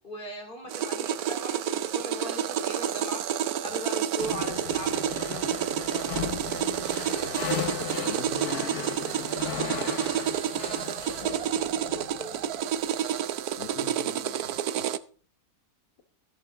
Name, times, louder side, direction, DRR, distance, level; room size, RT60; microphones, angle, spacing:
voice 1, 0.0-5.9 11.9-12.4, equal, 35° left, 2 dB, 3.8 m, -39 dB
sound 1, 0.7-15.0, right 9 dB, 80° right, 1.2 m, -29 dB
sound 2, 4.2-12.8, left 10 dB, 90° left, 1.6 m, -37 dB
voice 2, 7.2-10.0 11.1-12.3 13.6-14.9, left 7 dB, 60° left, 7 dB, 1.5 m, -43 dB
14.0 x 11.0 x 3.6 m, 0.40 s
omnidirectional pair, 1.6 m